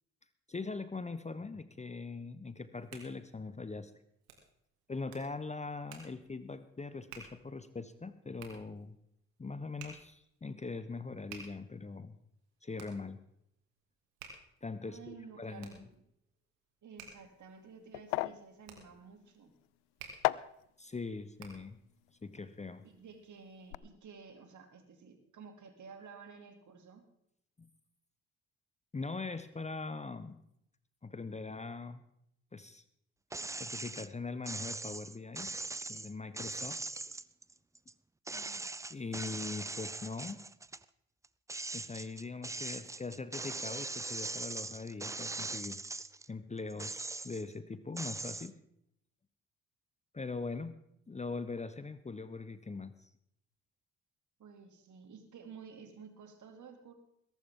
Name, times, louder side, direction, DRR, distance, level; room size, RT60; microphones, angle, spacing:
voice 1, 0.5-3.9 4.9-8.9 9.4-12.2 12.6-13.2 14.6-15.9 20.8-21.8 22.2-22.9 27.6-27.7 28.9-30.4 31.0-32.0 32.5-32.8 33.6-35.5 35.9-36.8 38.9-40.4 41.7-45.8 46.3-48.6 50.1-50.8 51.1-53.1, left 3 dB, 20° left, 13 dB, 0.9 m, -41 dB
Hands, 2.5-21.8, right 5 dB, 80° right, 2.5 m, -55 dB
voice 2, 14.8-16.0 16.8-19.5 22.8-27.0 38.3-38.6 54.4-56.9, right 5 dB, 55° right, 5 dB, 2.7 m, -52 dB
sound 1, 17.0-23.2 23.5-23.8, left 21 dB, 80° left, 0.5 m, -39 dB
sound 2, 33.3-34.1 34.5-37.9 38.3-40.8 41.2-46.3 46.7-47.5 48.0-48.5, right 3 dB, 10° right, 0.4 m, -41 dB
21.0 x 11.5 x 3.7 m, 0.76 s
hypercardioid pair, 55°, 36 cm